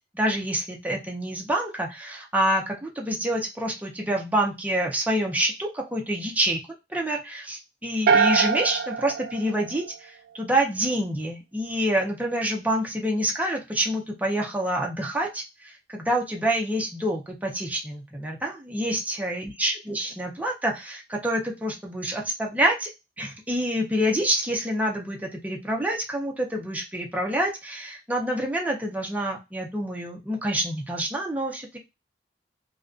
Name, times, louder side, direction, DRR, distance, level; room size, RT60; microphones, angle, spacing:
voice 1, 0.1-6.6 6.9-22.9 23.2-31.8, right 1 dB, 10° right, 0 dB, 0.5 m, -27 dB
sound 1, 8.1-10.3, right 5 dB, 55° right, 0.3 m, -24 dB
2.5 x 2.2 x 2.4 m, 0.24 s
head